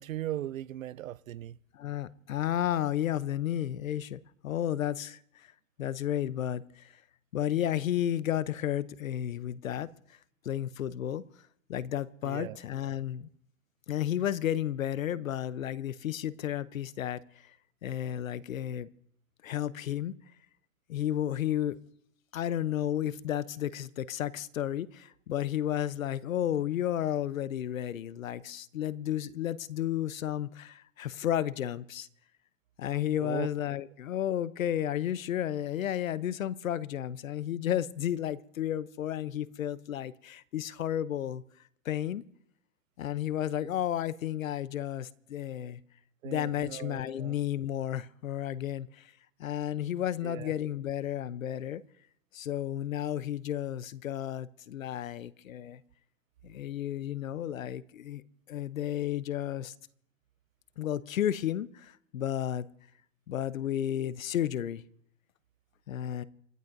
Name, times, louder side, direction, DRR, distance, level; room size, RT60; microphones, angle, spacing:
voice 1, 0.0-1.6 12.2-12.6 33.2-33.5 46.2-47.3 50.2-50.5, right 13 dB, 80° right, 0.6 m, -38 dB
voice 2, 1.7-5.5 5.8-6.9 7.3-9.9 10.4-11.2 11.7-13.3 13.9-17.5 17.8-18.9 19.4-20.1 20.9-21.8 22.3-32.1 32.8-41.4 41.8-42.2 43.0-45.8 46.2-49.1 49.4-51.8 52.3-55.8 56.4-58.2 58.5-59.7 60.8-62.7 63.3-64.8 65.9-66.2, left 11 dB, 90° left, 0.8 m, -32 dB
28.5 x 12.0 x 2.6 m
hypercardioid pair, 160°, 39 cm